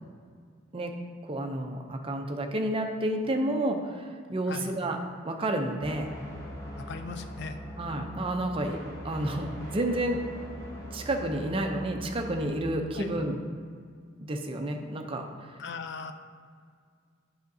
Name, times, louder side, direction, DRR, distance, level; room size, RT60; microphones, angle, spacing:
voice 1, 1.2-5.0 5.2-6.1 7.8-10.2 10.9-13.4 14.2-15.6, right 1 dB, 25° right, 4 dB, 0.5 m, -30 dB
sound 1, 5.8-12.5, equal, 15° left, 1.2 m, -41 dB
voice 2, 6.8-7.6 12.9-13.1 15.6-16.1, left 4 dB, 55° left, 8 dB, 0.4 m, -38 dB
7.8 x 5.7 x 2.7 m, 2.1 s
head